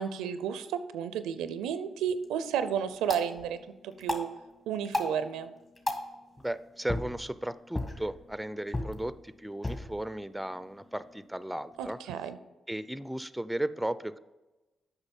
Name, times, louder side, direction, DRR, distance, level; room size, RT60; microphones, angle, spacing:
voice 1, 0.0-3.6 3.8-4.3 4.7-5.5 11.8-12.4, right 8 dB, 90° right, 12 dB, 0.4 m, -32 dB
sound 1, 1.9-12.0, left 1 dB, 30° left, 1.8 m, -39 dB
voice 2, 6.4-12.0 12.7-14.2, right 1 dB, 5° right, 15 dB, 0.4 m, -35 dB
8.1 x 5.7 x 5.3 m, 1.1 s
supercardioid pair, 50°, 0 cm